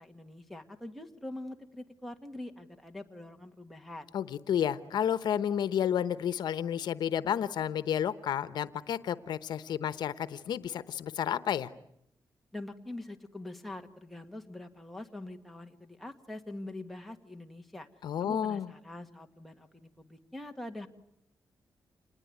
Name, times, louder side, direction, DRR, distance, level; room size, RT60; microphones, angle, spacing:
voice 1, 0.0-4.1 12.5-17.9 18.2-20.9, left 1 dB, ahead, 3 dB, 1.8 m, -44 dB
voice 2, 4.1-11.7 18.0-18.7, left 9 dB, 85° left, 14 dB, 1.0 m, -31 dB
27.5 x 20.0 x 9.4 m, 0.75 s
wide cardioid pair, 145°, 7 cm